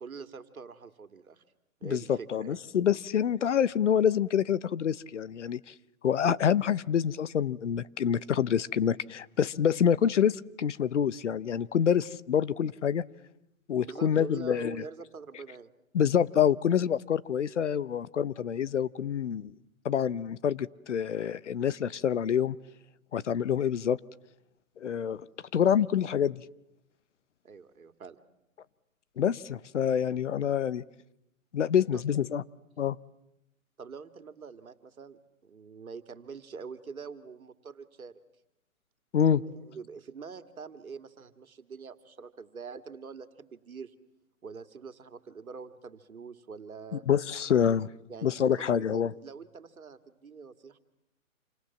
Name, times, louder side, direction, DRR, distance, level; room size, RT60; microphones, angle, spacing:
voice 1, 0.0-1.4 1.8-2.6 13.8-15.7 27.4-28.2 31.9-32.0 33.8-38.2 39.4-43.9 44.4-47.0 48.1-48.4 48.7-50.8, right 5 dB, 80° right, 10 dB, 2.5 m, -44 dB
voice 2, 1.8-5.7 6.0-13.0 13.7-14.8 15.9-19.5 19.8-22.6 23.1-24.0 24.8-25.2 25.5-26.4 29.2-30.8 31.5-32.4 32.8-33.0 39.1-39.4 47.1-47.9 48.2-49.1, left 8 dB, 55° left, 18 dB, 1.0 m, -27 dB
28.0 x 27.0 x 7.3 m, 0.84 s
hypercardioid pair, 155°, 42 cm